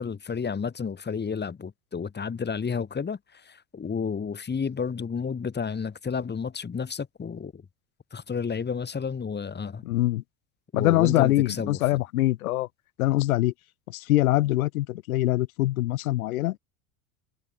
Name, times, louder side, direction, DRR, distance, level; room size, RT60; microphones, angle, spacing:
voice 1, 0.0-7.6 8.1-9.8 10.7-12.0, left 6 dB, 25° left, 7.6 m, -31 dB
voice 2, 9.8-10.2 10.7-12.7 13.0-13.5 13.9-16.6, left 17 dB, 75° left, 2.0 m, -23 dB
hypercardioid pair, 85°, 44 cm